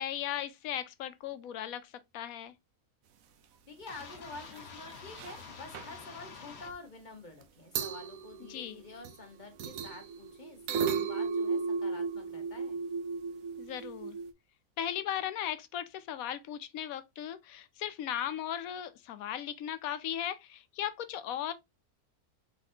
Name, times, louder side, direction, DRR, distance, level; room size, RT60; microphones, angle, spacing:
voice 1, 0.0-2.5 8.5-8.8 13.6-14.2 14.8-21.5, left 10 dB, 75° left, 1.1 m, -37 dB
voice 2, 3.7-12.8, left 3 dB, 35° left, 1.2 m, -48 dB
sound 1, 3.8-4.0 4.3-4.6 4.9-5.4 5.7-5.9 7.4-7.5 7.7-9.2 9.6-14.3, right 5 dB, 70° right, 1.1 m, -35 dB
sound 2, 3.9-6.7, left 5 dB, 50° left, 1.1 m, -48 dB
4.2 x 4.1 x 2.8 m
omnidirectional pair, 1.6 m